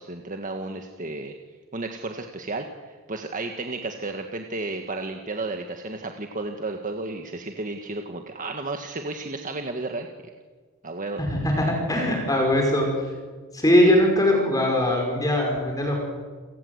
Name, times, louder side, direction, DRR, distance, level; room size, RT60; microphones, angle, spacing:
voice 1, 0.0-1.3 1.7-10.1 10.8-11.2, right 2 dB, 40° right, 4 dB, 1.6 m, -33 dB
voice 2, 11.3-12.9 13.5-16.0, left 1 dB, 15° left, 1 dB, 5.3 m, -21 dB
29.5 x 18.0 x 8.1 m, 1.4 s
head